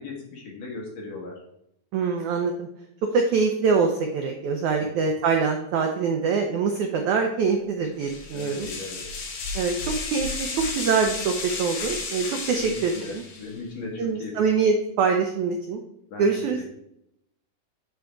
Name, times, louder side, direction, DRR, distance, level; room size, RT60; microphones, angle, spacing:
voice 1, 0.0-1.4 4.8-4.9 8.3-9.0 12.5-14.3 16.1-16.3, left 3 dB, 55° left, -2 dB, 2.5 m, -37 dB
voice 2, 1.9-2.7 3.1-8.7 9.5-13.2 14.0-15.8 16.2-16.6, right 5 dB, 85° right, 3 dB, 1.7 m, -24 dB
sound 1, 8.0-13.6, left 4 dB, 75° left, 3.6 m, -33 dB
9.4 x 3.8 x 4.7 m, 0.75 s
omnidirectional pair, 4.3 m